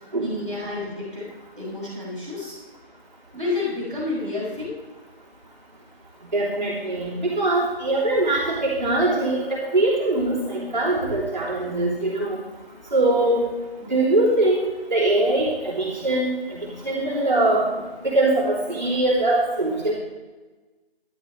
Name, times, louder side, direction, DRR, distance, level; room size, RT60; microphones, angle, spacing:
voice 1, 0.2-1.3 1.5-2.6 3.3-4.7, left 3 dB, 5° left, -19 dB, 3.2 m, -29 dB
voice 2, 6.3-12.4 12.9-13.4 13.9-17.6 18.0-19.9, right 2 dB, 45° right, -7 dB, 3.3 m, -22 dB
11.5 x 11.5 x 3.3 m, 1.2 s
figure-of-eight pair, 175°, 32 cm